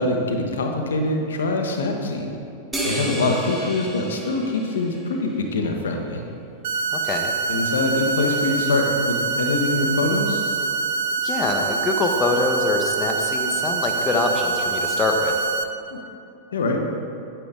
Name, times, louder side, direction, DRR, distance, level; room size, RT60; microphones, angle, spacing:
voice 1, 0.0-2.3 2.8-6.2 7.5-10.5 15.9-16.0 16.5-16.8, left 2 dB, 65° left, 3 dB, 1.0 m, -24 dB
sound 1, 2.7-5.4, right 2 dB, 10° right, 1.7 m, -31 dB
sound 2, 6.6-15.6, right 4 dB, 55° right, 0.5 m, -25 dB
voice 2, 6.9-7.3 11.2-15.4, left 3 dB, 20° left, 3 dB, 1.0 m, -24 dB
9.0 x 8.9 x 3.5 m, 2.7 s
figure-of-eight pair, 90°, 0 cm